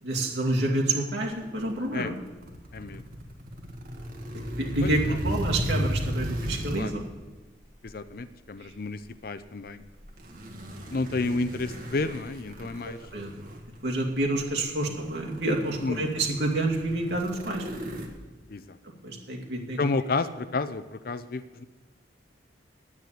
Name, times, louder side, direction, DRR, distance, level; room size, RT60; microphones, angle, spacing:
voice 1, 0.0-2.1 4.5-7.0 12.8-13.3 13.8-17.7 19.0-19.8, right 2 dB, 65° right, -1 dB, 2.4 m, -28 dB
sound 1, 1.5-7.1 7.9-8.1 10.0-13.8 14.4-14.5 14.8-18.1, equal, 50° right, 1.7 m, -35 dB
voice 2, 2.7-3.0 4.8-5.2 6.7-6.9 7.8-9.8 10.9-13.0 15.8-16.1 18.5-18.8 19.8-21.6, left 3 dB, 50° left, 13 dB, 0.5 m, -31 dB
9.7 x 9.2 x 8.9 m, 1.2 s
head